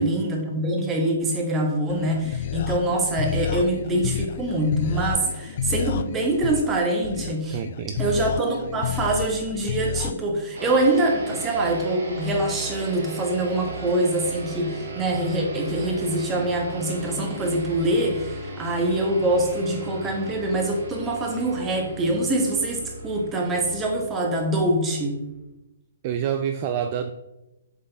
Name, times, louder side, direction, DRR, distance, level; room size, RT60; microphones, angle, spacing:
voice 1, 0.0-7.6 8.0-25.2, right 1 dB, 15° right, 1 dB, 1.2 m, -24 dB
sound 1, 1.9-10.1, left 9 dB, 50° left, 0.3 m, -30 dB
voice 2, 7.5-8.0 26.0-27.1, right 8 dB, 40° right, 8 dB, 0.3 m, -27 dB
sound 2, 10.6-25.4, right 2 dB, 70° right, 2.0 m, -37 dB
7.2 x 4.1 x 3.5 m, 0.97 s
hypercardioid pair, 140°, 0 cm